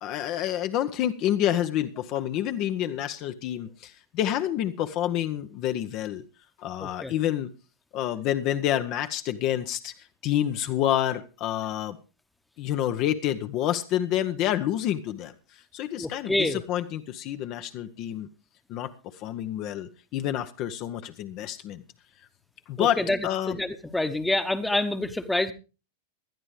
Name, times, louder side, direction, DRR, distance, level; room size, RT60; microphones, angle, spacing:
voice 1, 0.0-6.2 6.6-7.5 7.9-12.0 12.6-18.3 18.7-21.8 22.7-23.6, left 11 dB, 40° left, 9 dB, 0.9 m, -28 dB
voice 2, 6.8-7.1 16.0-16.6 22.8-23.2 23.5-23.7 23.9-25.5, left 2 dB, 5° left, 12 dB, 1.2 m, -26 dB
19.5 x 12.0 x 3.2 m, 0.31 s
figure-of-eight pair, 90°, 0 cm